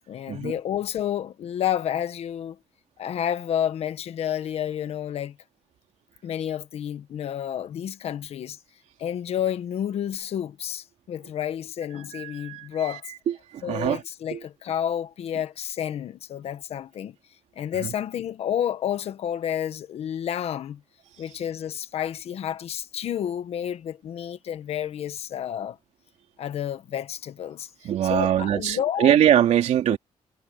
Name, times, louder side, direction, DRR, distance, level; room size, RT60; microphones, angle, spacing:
voice 1, 0.1-2.6 3.0-5.4 6.2-8.6 9.0-13.0 13.6-17.2 17.6-20.8 21.2-25.8 26.4-27.7 28.1-29.1 29.9-30.0, left 10 dB, 60° left, 1.3 m, -30 dB
voice 2, 12.1-12.7 13.3-14.0 14.3-14.4 27.8-30.0, right 10 dB, 80° right, 2.9 m, -22 dB
wide cardioid pair, 175°, 12 cm